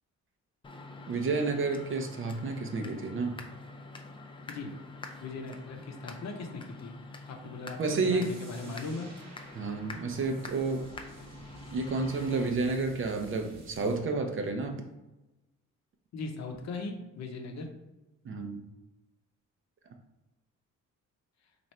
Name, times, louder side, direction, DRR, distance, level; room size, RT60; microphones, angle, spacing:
sound 1, 0.6-12.5, left 2 dB, 15° left, 0.4 m, -46 dB
voice 1, 1.1-3.4 7.8-8.3 8.6-8.7 9.5-10.9 11.7-14.8 18.2-18.6, right 3 dB, 45° right, 5 dB, 0.6 m, -30 dB
voice 2, 5.2-6.9 7.2-7.8 8.1-9.1 16.1-17.7, left 3 dB, 60° left, 3 dB, 0.7 m, -39 dB
sound 2, 8.2-14.0, right 2 dB, 60° right, 0.9 m, -51 dB
3.2 x 2.6 x 4.1 m, 1.0 s
cardioid pair, 90°, 30 cm